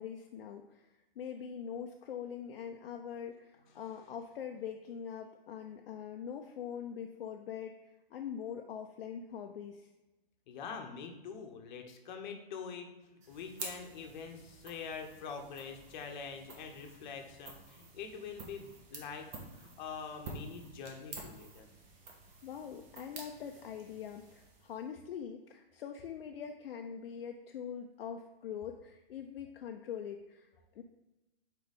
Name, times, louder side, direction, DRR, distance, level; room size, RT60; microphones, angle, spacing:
voice 1, 0.0-9.9 22.4-30.5 30.7-30.8, left 8 dB, 70° left, 3 dB, 0.6 m, -43 dB
voice 2, 10.5-21.7, left 6 dB, 50° left, 4 dB, 1.0 m, -45 dB
sound 1, 13.2-24.9, right 3 dB, 25° right, 0.9 m, -50 dB
4.5 x 4.0 x 5.2 m, 1.0 s
hypercardioid pair, 140°, 30 cm